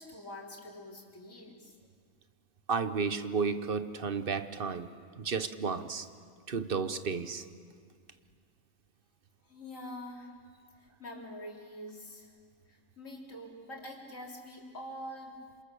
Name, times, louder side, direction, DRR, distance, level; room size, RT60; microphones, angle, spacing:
voice 1, 0.0-1.8 9.4-10.3 10.7-12.4 12.7-15.4, left 1 dB, 85° left, 4.1 m, -45 dB
voice 2, 2.7-4.9 5.2-6.1 6.5-7.4, right 5 dB, 45° right, 1.1 m, -32 dB
27.5 x 26.5 x 7.0 m
omnidirectional pair, 1.3 m